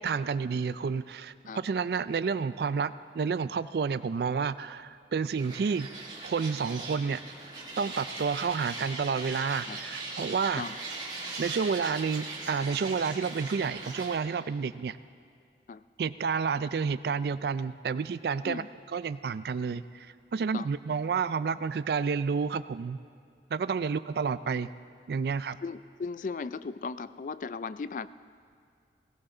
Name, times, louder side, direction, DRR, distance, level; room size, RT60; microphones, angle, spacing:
voice 1, 0.0-5.9 6.2-7.2 7.8-10.6 11.4-15.0 16.0-18.6 18.9-23.0 23.5-24.7 25.1-25.6, right 5 dB, 65° right, 14 dB, 0.3 m, -30 dB
sound 1, 5.4-14.2, right 3 dB, 25° right, 1.8 m, -40 dB
voice 2, 25.6-28.1, left 4 dB, 45° left, 15 dB, 0.3 m, -37 dB
17.5 x 17.0 x 3.8 m, 2.3 s
head